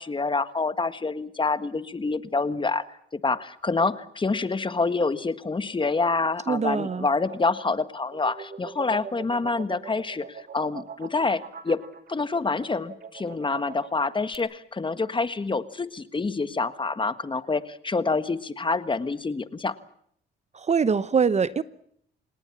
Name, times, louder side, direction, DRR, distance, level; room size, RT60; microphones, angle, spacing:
voice 1, 0.0-2.8 3.1-11.8 12.1-19.7, left 3 dB, 25° left, 13 dB, 1.6 m, -27 dB
sound 1, 5.9-14.3, right 6 dB, 50° right, 3.1 m, -43 dB
voice 2, 6.5-7.1 20.5-21.6, right 6 dB, 35° right, 16 dB, 0.9 m, -23 dB
29.5 x 18.5 x 7.2 m, 0.68 s
cardioid pair, 90°, 20 cm